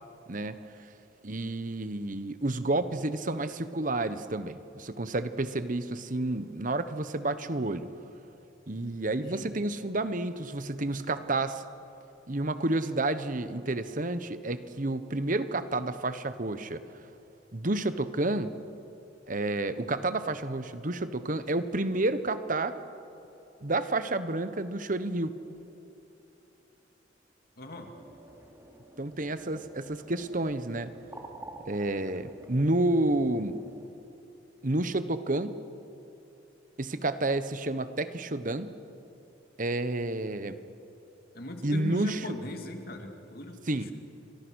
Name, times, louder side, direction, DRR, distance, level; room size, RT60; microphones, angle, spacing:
voice 1, 0.3-0.6 1.2-7.9 8.7-11.6 12.3-16.8 17.5-18.6 19.3-22.8 23.6-25.3 29.0-30.9 31.7-33.5 34.6-35.6 36.8-38.7 39.6-40.6 41.6-42.2 43.7-43.9, right 2 dB, 45° right, 12 dB, 1.1 m, -30 dB
voice 2, 9.2-9.5 27.6-27.9 41.3-43.9, left 1 dB, 55° left, 4 dB, 2.7 m, -39 dB
sound 1, 27.7-33.9, right 2 dB, 15° right, 2.7 m, -49 dB
30.0 x 24.5 x 6.4 m, 2.9 s
head